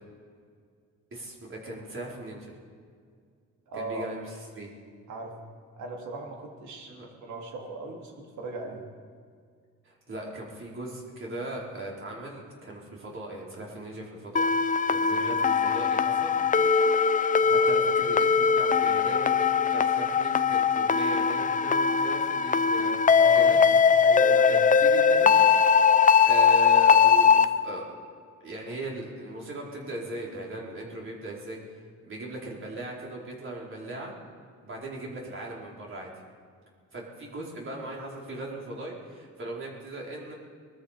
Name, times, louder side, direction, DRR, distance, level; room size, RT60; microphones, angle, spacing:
voice 1, 1.1-2.6 3.7-4.3 4.5-4.7 6.9-7.0 9.8-16.3 17.4-23.0 23.3-23.6 24.5-25.3 26.2-27.8 28.4-34.1 34.6-36.1 36.9-40.3, right 2 dB, 40° right, -3 dB, 4.1 m, -38 dB
voice 2, 3.7-4.1 5.1-5.3 5.8-8.8 23.2-23.5 24.0-24.6, right 3 dB, 70° right, 1 dB, 3.0 m, -38 dB
sound 1, 14.4-27.5, left 6 dB, 25° left, 0.6 m, -21 dB
22.0 x 13.0 x 5.0 m, 2.1 s
cardioid pair, 90°, 30 cm